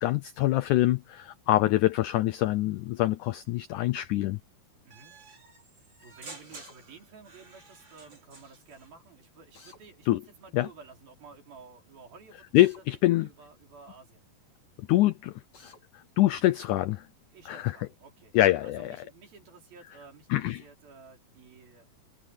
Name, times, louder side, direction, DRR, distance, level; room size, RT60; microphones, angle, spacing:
voice 1, 0.0-4.4 10.1-10.2 10.5-10.7 12.5-13.3 14.8-15.7 16.2-17.0 17.5-17.8 18.3-19.0 20.3-20.6, left 15 dB, 85° left, 1.7 m, -25 dB
voice 2, 4.8-5.2 5.7-14.2 17.3-18.3 18.6-22.0, right 4 dB, 70° right, 6.8 m, -52 dB
sound 1, 4.9-8.9, right 3 dB, 30° right, 5.0 m, -50 dB
Drill, 6.5-6.8 9.5-9.8 12.6-12.8 15.5-15.8, left 4 dB, 45° left, 6.4 m, -53 dB
omnidirectional pair, 4.3 m